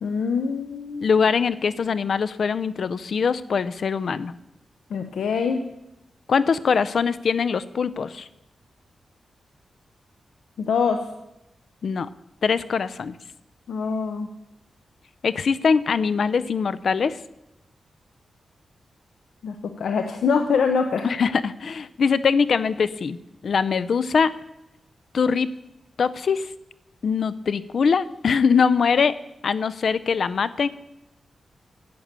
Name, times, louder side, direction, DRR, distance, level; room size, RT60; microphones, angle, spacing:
voice 1, 0.0-1.1 4.9-5.6 10.6-11.1 13.7-14.3 19.4-21.1, left 5 dB, 90° left, 6 dB, 0.8 m, -24 dB
voice 2, 1.0-4.3 6.3-8.3 11.8-12.1 12.4-13.2 15.2-17.2 21.0-23.2 23.4-24.3 25.1-25.5 26.0-26.5 27.0-29.2 29.4-30.7, left 5 dB, 65° left, 16 dB, 0.5 m, -22 dB
11.0 x 8.7 x 6.8 m, 0.90 s
wide cardioid pair, 95°, 0 cm